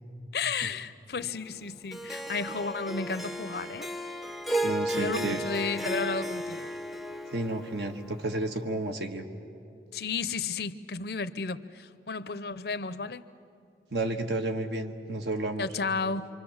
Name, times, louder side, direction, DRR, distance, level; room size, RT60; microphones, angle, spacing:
voice 1, 0.3-3.9 4.9-6.7 9.9-13.2 15.6-16.3, left 4 dB, 65° left, 14 dB, 0.6 m, -33 dB
Harp, 1.9-8.3, right 1 dB, ahead, 0.6 m, -34 dB
voice 2, 4.6-5.5 7.3-9.3 13.9-15.7, right 2 dB, 75° right, 5 dB, 1.5 m, -31 dB
26.5 x 25.0 x 7.2 m, 2.6 s
head